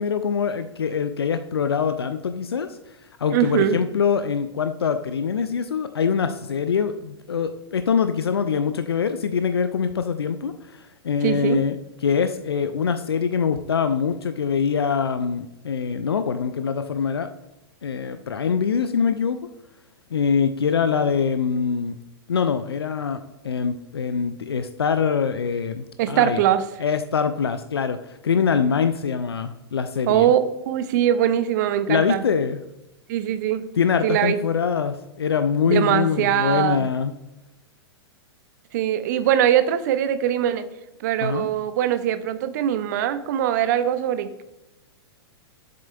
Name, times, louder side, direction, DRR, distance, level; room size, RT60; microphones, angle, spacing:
voice 1, 0.0-2.8 3.2-17.3 17.8-19.4 20.1-22.0 22.3-26.4 26.8-30.3 31.9-32.6 33.8-37.1 41.2-41.5, left 6 dB, 70° left, 9 dB, 0.4 m, -24 dB
voice 2, 3.3-3.8 11.2-11.6 26.0-26.6 30.1-30.4 30.7-32.2 33.1-33.6 34.0-34.4 35.7-36.8 38.7-40.6 41.0-44.4, right 11 dB, 45° right, 12 dB, 0.6 m, -21 dB
7.5 x 7.3 x 2.3 m, 0.92 s
figure-of-eight pair, 100°, 14 cm